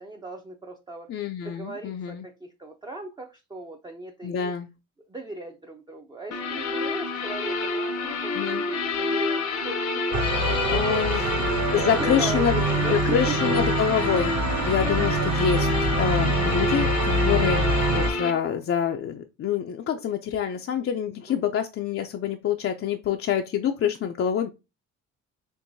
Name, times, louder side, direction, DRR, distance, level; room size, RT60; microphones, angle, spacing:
voice 1, 0.0-4.6 5.1-13.2 21.3-21.5, right 2 dB, 15° right, 0.5 m, -38 dB
voice 2, 1.1-2.2 4.2-4.7 8.3-8.6 10.7-11.2 11.7-12.5 12.9-14.4 14.6-15.7 16.0-24.5, left 8 dB, 50° left, 0.4 m, -26 dB
sound 1, 6.3-18.3, left 3 dB, 65° left, 0.8 m, -28 dB
sound 2, 10.1-18.1, right 2 dB, 70° right, 0.7 m, -25 dB
4.5 x 3.0 x 2.6 m
cardioid pair, 90°, 30 cm